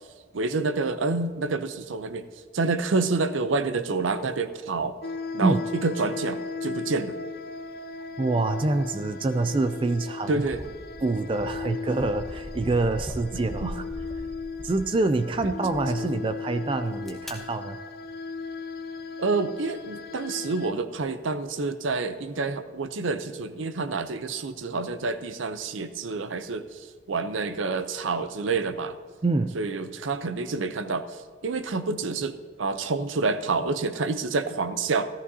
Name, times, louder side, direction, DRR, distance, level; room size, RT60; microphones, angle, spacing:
voice 1, 0.3-2.3 2.5-4.9 5.3-7.2 10.3-10.6 13.6-13.7 19.2-29.0 29.5-35.1, right 3 dB, 90° right, 11 dB, 0.6 m, -28 dB
sound 1, 5.0-20.7, left 4 dB, 55° left, 0.4 m, -37 dB
voice 2, 8.2-10.3 11.0-13.8 14.6-17.8 29.2-29.5, right 3 dB, 25° right, 10 dB, 0.3 m, -26 dB
sound 2, 9.9-10.0 10.4-14.9 15.3-15.8 16.7-17.3, equal, ahead, 1.2 m, -40 dB
14.5 x 14.0 x 2.7 m, 1.5 s
head